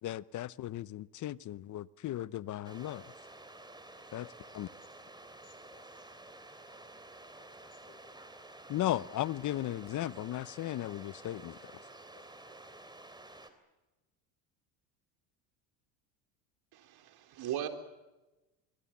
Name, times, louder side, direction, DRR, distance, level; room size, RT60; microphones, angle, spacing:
voice 1, 0.0-3.1 4.1-4.3 4.5-4.7 8.7-11.6, left 14 dB, 40° left, 0.8 m, -36 dB
sound 1, 2.6-13.5, right 2 dB, 10° right, 3.4 m, -52 dB
voice 2, 4.2-4.7 5.0-5.8 7.3-7.5 7.8-8.1 12.1-12.2, left 9 dB, 65° left, 7.3 m, -63 dB
voice 3, 16.7-17.7, right 11 dB, 50° right, 3.7 m, -38 dB
26.5 x 23.5 x 7.3 m
supercardioid pair, 110°, 48 cm